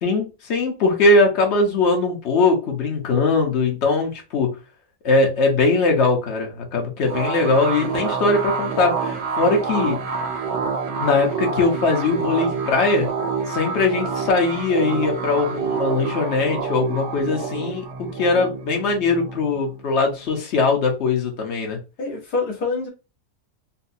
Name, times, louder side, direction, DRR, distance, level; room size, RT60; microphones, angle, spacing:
voice 1, 0.0-4.5 5.0-10.0 11.0-13.1 13.5-21.8, left 3 dB, 50° left, 1.1 m, -20 dB
sound 1, 7.1-20.3, right 5 dB, 85° right, 1.2 m, -27 dB
voice 2, 22.0-22.9, left 4 dB, 70° left, 1.9 m, -25 dB
4.1 x 2.2 x 2.7 m
omnidirectional pair, 1.7 m